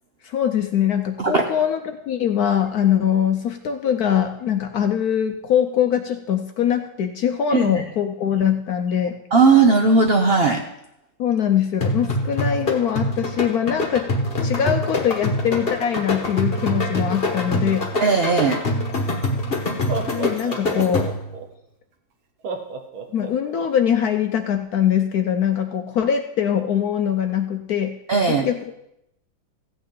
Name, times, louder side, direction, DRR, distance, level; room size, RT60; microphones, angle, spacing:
voice 1, 0.2-9.2 11.2-14.1 14.4-17.8 20.1-21.1 23.1-27.9 28.4-28.6, left 9 dB, 70° left, 6 dB, 0.9 m, -22 dB
voice 2, 7.5-7.8 9.3-10.6 18.0-18.6 28.1-28.5, right 4 dB, 70° right, 4 dB, 0.5 m, -17 dB
sound 1, 11.8-21.3, left 1 dB, 35° left, 1.3 m, -25 dB
Laughter, 19.0-19.1 19.7-21.5 22.4-23.7, right 4 dB, 85° right, 1.8 m, -32 dB
15.0 x 8.9 x 3.8 m, 0.83 s
omnidirectional pair, 2.1 m